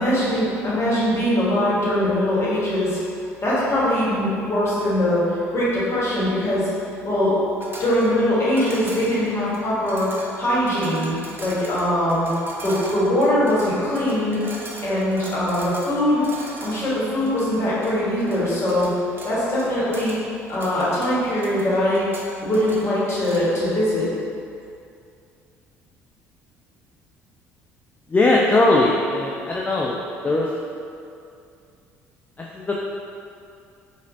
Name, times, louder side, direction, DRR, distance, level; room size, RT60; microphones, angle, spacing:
voice 1, 0.0-3.0 3.4-6.7 7.0-7.3 7.8-10.1 10.4-12.3 12.6-14.4 14.8-16.2 16.6-18.9 19.2-20.2 20.5-22.0 22.4-24.1, left 1 dB, 40° left, -8 dB, 1.4 m, -22 dB
sound 1, 7.6-23.6, right 1 dB, 30° right, 0.7 m, -39 dB
voice 2, 28.1-30.0 30.2-30.5 32.4-32.8, left 2 dB, 20° left, -3 dB, 0.4 m, -19 dB
4.2 x 2.5 x 2.7 m, 2.5 s
hypercardioid pair, 60°, 7 cm